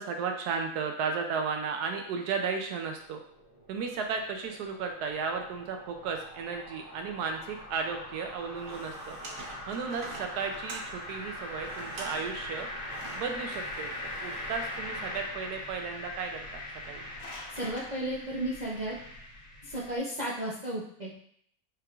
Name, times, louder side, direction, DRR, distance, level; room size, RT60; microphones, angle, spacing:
voice 1, 0.0-3.2 3.7-9.2 9.7-12.7 13.2-13.9 14.2-17.1, right 5 dB, 80° right, 4 dB, 1.1 m, -34 dB
sound 1, 2.6-20.0, left 1 dB, 30° left, 1.8 m, -42 dB
sound 2, 8.5-14.8, right 2 dB, 60° right, 1.2 m, -46 dB
sound 3, 17.0-17.9, left 2 dB, 45° left, 1.3 m, -44 dB
voice 2, 17.5-19.0 19.6-21.1, right 1 dB, 40° right, -7 dB, 0.6 m, -34 dB
5.7 x 3.6 x 2.4 m, 0.66 s
omnidirectional pair, 1.7 m